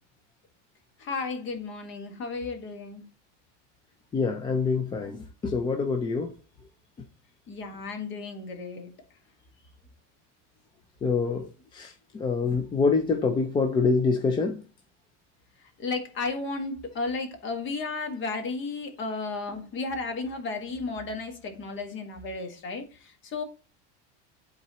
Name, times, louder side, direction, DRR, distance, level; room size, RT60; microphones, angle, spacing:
voice 1, 1.0-3.0 7.5-8.9 15.8-23.4, left 3 dB, 30° left, 1.6 m, -33 dB
voice 2, 4.1-6.3 11.0-11.5 11.7-14.6, left 4 dB, 15° left, 0.4 m, -26 dB
11.0 x 3.9 x 3.0 m
supercardioid pair, 155°, 36 cm